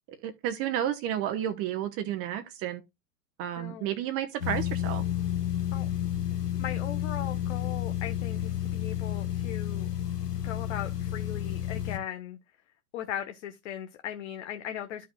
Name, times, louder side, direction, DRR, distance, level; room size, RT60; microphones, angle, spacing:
voice 1, 0.2-2.8 3.4-5.0, right 11 dB, 30° right, 1.1 m, -31 dB
voice 2, 3.6-4.0 5.7-5.9 6.6-9.9 10.4-12.4 12.9-15.1, left 10 dB, 50° left, 1.2 m, -38 dB
sound 1, 4.4-12.0, left 11 dB, 85° left, 1.5 m, -31 dB
13.5 x 5.4 x 2.3 m
figure-of-eight pair, 100°, 46 cm